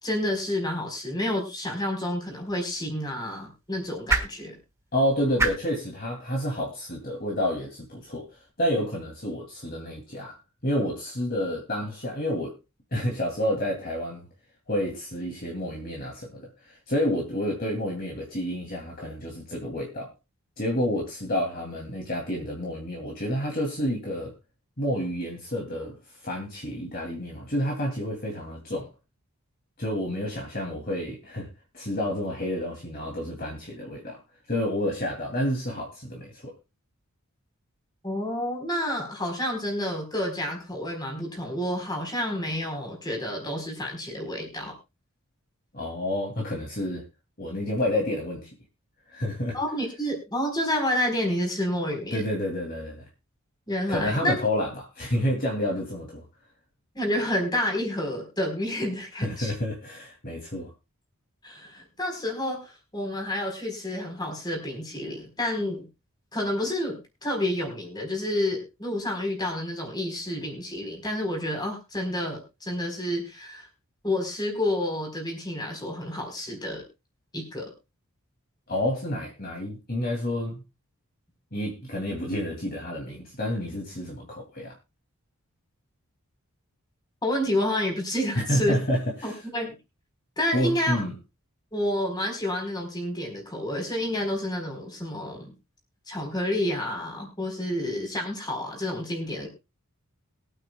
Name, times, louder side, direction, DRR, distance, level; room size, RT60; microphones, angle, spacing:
voice 1, 0.0-4.6 38.0-44.8 49.5-52.2 53.7-54.3 56.9-59.5 61.4-65.9 66.3-73.7 74.0-76.8 77.3-77.7 87.2-88.8 89.2-89.7 90.4-91.0 91.7-95.5 96.1-99.5, left 1 dB, 20° left, 3 dB, 4.1 m, -29 dB
sound 1, 2.3-8.5, right 3 dB, 15° right, 1.5 m, -34 dB
voice 2, 4.9-10.3 10.6-12.6 12.9-14.3 14.7-20.1 20.6-24.3 24.8-26.0 26.2-28.9 29.8-31.5 31.7-34.2 34.5-36.5 45.7-47.0 47.4-48.5 49.1-49.6 52.1-53.1 53.9-56.2 59.2-60.7 78.7-80.6 81.5-84.7 88.3-89.4 90.5-91.1, equal, 40° left, -1 dB, 2.7 m, -29 dB
22.5 x 9.1 x 2.3 m, 0.26 s
head